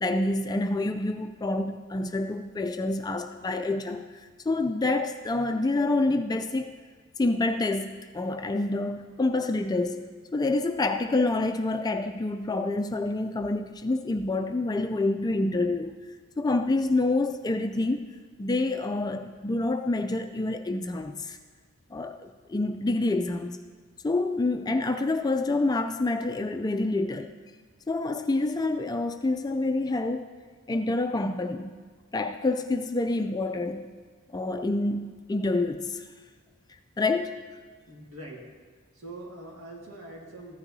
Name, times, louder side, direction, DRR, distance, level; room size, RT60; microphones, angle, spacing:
voice 1, 0.0-4.2 4.5-6.7 7.2-16.0 16.4-18.0 18.4-21.4 21.9-23.6 24.0-27.3 27.9-30.3 30.7-31.8 32.1-33.9 34.3-36.1 37.0-37.5, left 2 dB, 20° left, 6 dB, 0.3 m, -27 dB
voice 2, 37.9-38.6 38.9-40.6, right 1 dB, 70° right, -1 dB, 1.9 m, -43 dB
14.5 x 9.9 x 2.7 m, 1.5 s
head